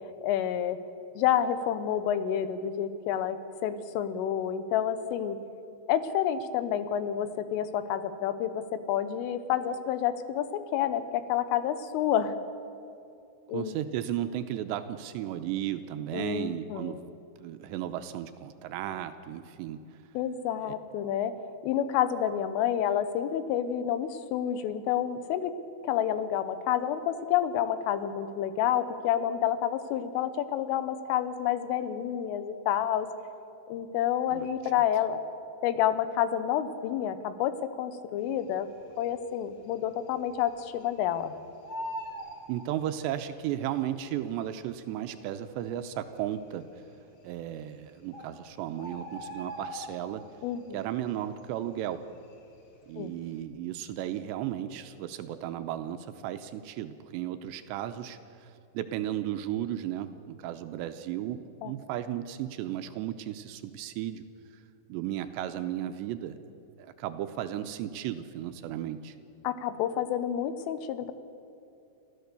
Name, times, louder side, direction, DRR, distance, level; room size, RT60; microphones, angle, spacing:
voice 1, 0.2-0.8 1.2-5.4 5.9-12.4 13.5-13.8 16.1-17.0 20.2-21.3 21.6-25.5 25.8-33.1 33.7-35.2 35.6-38.7 39.0-41.3 50.4-50.8 53.0-53.1 61.6-61.7 69.5-71.1, left 10 dB, 85° left, 11 dB, 3.6 m, -29 dB
voice 2, 13.5-17.1 17.4-19.8 20.6-20.7 34.3-34.5 42.5-46.6 47.2-50.2 50.7-52.0 52.9-58.2 58.7-64.2 64.9-66.4 66.8-69.2, right 11 dB, 80° right, 9 dB, 2.6 m, -34 dB
Bird, 38.7-39.3 39.6-39.7 40.0-41.2 41.5-43.3 44.1-44.2 44.9-45.0 45.2-45.3 45.9-46.4 47.3-47.4 47.8-47.9 48.1-50.4 50.7-51.1 51.4-52.8 53.1-53.3, equal, 45° left, 2.2 m, -41 dB
30.0 x 14.0 x 6.8 m, 2.6 s
omnidirectional pair, 5.6 m